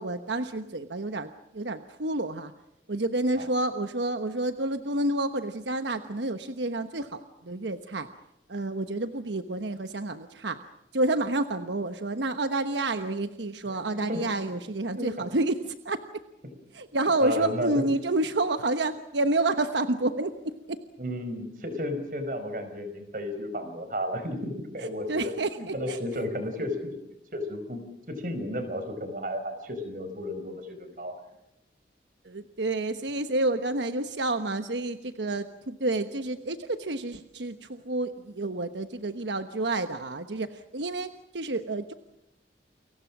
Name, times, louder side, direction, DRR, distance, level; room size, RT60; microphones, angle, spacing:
voice 1, 0.0-2.5 2.9-8.1 8.5-10.6 10.9-16.2 16.7-20.8 24.8-26.0 32.2-41.9, right 2 dB, 85° right, 9 dB, 1.2 m, -29 dB
voice 2, 13.7-14.2 14.9-15.1 17.2-17.7 21.0-25.3 25.6-26.9 27.3-31.2, equal, 50° right, 9 dB, 5.0 m, -33 dB
29.5 x 23.5 x 6.1 m, 0.86 s
head